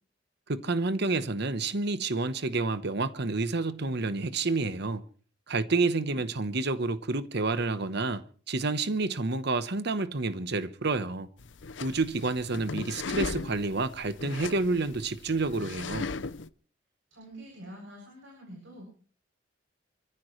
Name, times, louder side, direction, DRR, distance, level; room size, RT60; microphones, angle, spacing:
voice 1, 0.5-5.0 5.5-11.3 11.8-16.1, right 3 dB, 60° right, 1.1 m, -29 dB
Leaning on Counter, 11.4-16.5, left 4 dB, 70° left, 0.8 m, -38 dB
voice 2, 17.1-18.9, equal, 80° right, 7.8 m, -46 dB
28.0 x 14.5 x 3.2 m
head